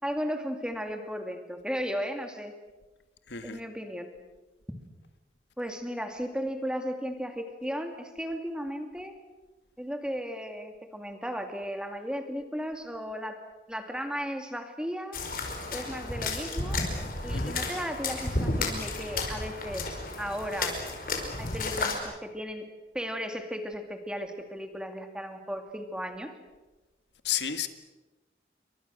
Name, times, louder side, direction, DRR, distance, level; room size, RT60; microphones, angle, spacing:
voice 1, 0.0-2.5 3.4-4.1 5.6-9.1 9.8-13.4 13.7-15.2 15.7-16.8 17.2-20.8 21.4-22.7 22.9-26.3, equal, 5° right, 5 dB, 2.5 m, -35 dB
voice 2, 3.3-3.6 17.3-17.5 27.2-27.7, left 9 dB, 80° left, 9 dB, 1.8 m, -31 dB
sound 1, 15.1-22.0, left 2 dB, 50° left, 5.1 m, -32 dB
29.5 x 24.5 x 6.5 m, 1.2 s
head